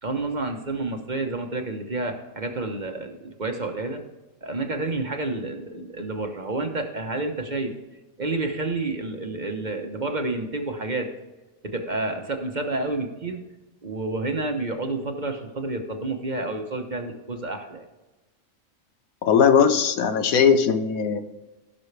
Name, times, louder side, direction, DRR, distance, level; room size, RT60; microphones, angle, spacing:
voice 1, 0.0-4.0 4.4-7.7 8.2-11.1 11.6-13.4 13.8-17.8, right 2 dB, 35° right, 5 dB, 1.0 m, -29 dB
voice 2, 19.2-21.2, left 7 dB, 90° left, 8 dB, 1.3 m, -19 dB
16.5 x 6.2 x 3.3 m, 1.1 s
omnidirectional pair, 1.4 m